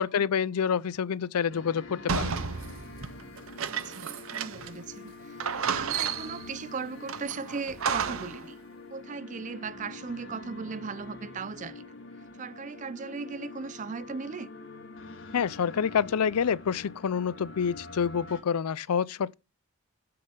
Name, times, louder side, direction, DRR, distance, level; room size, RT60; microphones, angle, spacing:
voice 1, 0.0-2.4 15.3-19.3, left 7 dB, 90° left, 0.5 m, -27 dB
sound 1, 1.5-18.4, left 3 dB, 55° left, 1.8 m, -45 dB
sound 2, 2.1-4.8 5.1-5.2 5.4-6.5 7.1-8.4, right 6 dB, 70° right, 0.7 m, -32 dB
voice 2, 3.6-5.4 5.8-8.6 8.9-11.9 12.4-14.5, right 5 dB, 35° right, 0.5 m, -38 dB
7.8 x 6.9 x 6.6 m
head